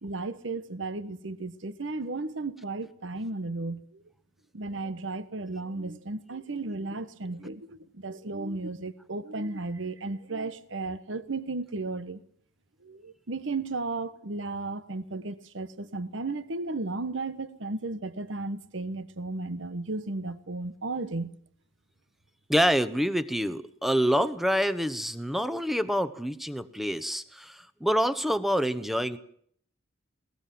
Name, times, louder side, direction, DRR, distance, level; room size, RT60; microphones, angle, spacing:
voice 1, 0.0-4.0 4.5-12.2 12.8-21.3, right 3 dB, 70° right, 1.2 m, -34 dB
voice 2, 22.5-29.2, equal, ahead, 1.0 m, -27 dB
21.5 x 18.5 x 7.6 m
head